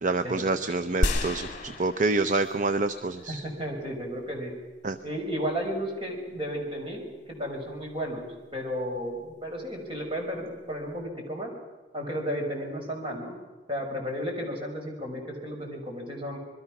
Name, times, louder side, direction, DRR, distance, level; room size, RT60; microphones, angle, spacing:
voice 1, 0.0-3.4 4.8-4.9, right 3 dB, 45° right, 10 dB, 0.7 m, -27 dB
sound 1, 1.0-2.8 3.3-3.4, left 1 dB, 45° left, 2.3 m, -30 dB
voice 2, 3.2-4.5 5.0-11.5 11.9-13.3 13.7-16.4, equal, 30° right, 2 dB, 5.0 m, -33 dB
26.5 x 21.5 x 6.0 m, 1.2 s
head